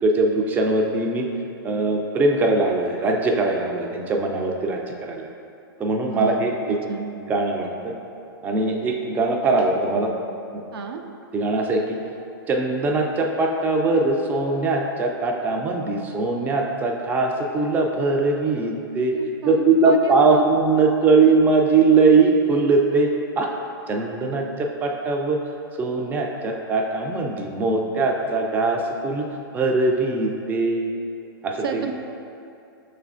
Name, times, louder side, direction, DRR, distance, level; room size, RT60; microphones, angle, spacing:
voice 1, 0.0-1.3 1.6-5.3 5.8-6.8 7.3-7.9 8.4-10.1 10.5-10.6 11.3-12.0 12.5-19.2 19.5-23.1 23.4-23.5 23.9-25.4 25.8-29.3 29.5-30.8 31.4-31.9, right 3 dB, 15° right, 1 dB, 0.3 m, -21 dB
voice 2, 6.0-6.4 6.9-7.1 10.7-11.0 19.1-20.5 31.6-31.9, right 6 dB, 80° right, 4 dB, 0.4 m, -29 dB
5.9 x 3.2 x 2.4 m, 2.6 s
hypercardioid pair, 130°, 13 cm